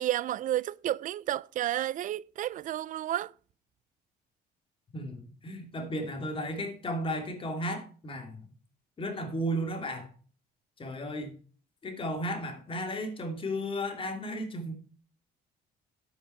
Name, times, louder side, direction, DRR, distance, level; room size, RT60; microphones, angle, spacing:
voice 1, 0.0-3.3, right 12 dB, 50° right, 0.4 m, -31 dB
voice 2, 4.9-8.4 9.0-10.1 10.8-11.3 11.8-14.7, equal, 30° left, 2.7 m, -34 dB
9.4 x 8.4 x 4.4 m
cardioid pair, 110°, 17 cm